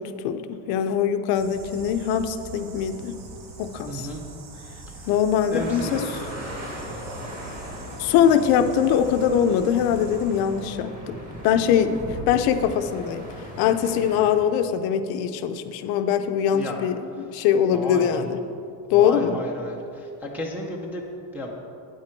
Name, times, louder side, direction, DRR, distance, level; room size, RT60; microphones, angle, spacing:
voice 1, 0.0-3.2 3.6-4.1 5.1-6.0 8.0-11.2 11.4-13.3 13.6-18.4 18.9-19.4, left 8 dB, 55° left, 9 dB, 0.6 m, -22 dB
sound 1, 1.3-10.7, right 3 dB, 50° right, 1.3 m, -43 dB
voice 2, 3.9-4.2 4.9-5.1 5.5-6.1 6.5-6.9 7.2-7.3 16.5-16.8 17.2-17.3 17.7-18.3 18.9-21.6, left 1 dB, 5° right, -4 dB, 0.4 m, -33 dB
sound 2, 5.6-14.3, equal, 20° right, 1.5 m, -38 dB
9.3 x 8.8 x 4.5 m, 2.6 s
cardioid pair, 180°, 44 cm